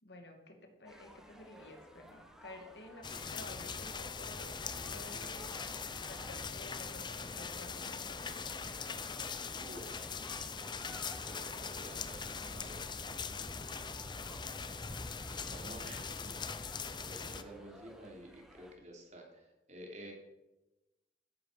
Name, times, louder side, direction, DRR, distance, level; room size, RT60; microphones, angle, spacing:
voice 1, 0.0-8.6, left 1 dB, 75° left, 4 dB, 2.5 m, -52 dB
sound 1, 0.8-18.7, equal, 5° right, 1.3 m, -57 dB
sound 2, 3.0-17.4, left 5 dB, 25° left, 0.7 m, -41 dB
voice 2, 9.5-10.0 11.3-13.7 15.2-20.1, right 1 dB, 40° right, 0 dB, 3.2 m, -52 dB
13.5 x 11.0 x 5.1 m, 1.0 s
head